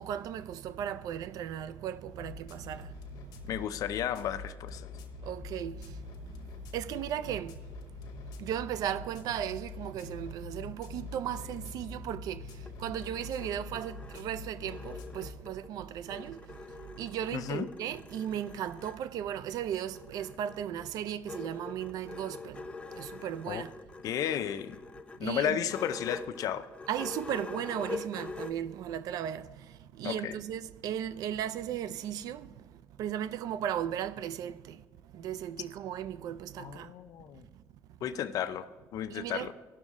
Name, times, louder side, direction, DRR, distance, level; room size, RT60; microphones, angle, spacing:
voice 1, 0.0-2.9 5.3-5.7 6.7-7.5 8.4-12.4 12.8-16.4 17.0-22.6 23.0-23.7 25.2-25.6 26.9-29.5 30.0-32.5 33.0-34.8 35.1-36.9 39.1-39.5, right 10 dB, 75° right, 0.4 m, -36 dB
sound 1, 2.1-15.4, left 5 dB, 85° left, 1.0 m, -45 dB
voice 2, 3.5-4.9 17.3-17.7 23.5-23.6 24.0-24.8 25.2-26.7 30.0-30.4 36.6-37.4 38.0-39.5, left 10 dB, 65° left, 0.5 m, -33 dB
sound 2, 12.4-15.7 16.1-19.0 20.0-28.5, left 3 dB, 15° left, 0.6 m, -44 dB
16.5 x 6.3 x 3.6 m
cardioid pair, 115°, 6 cm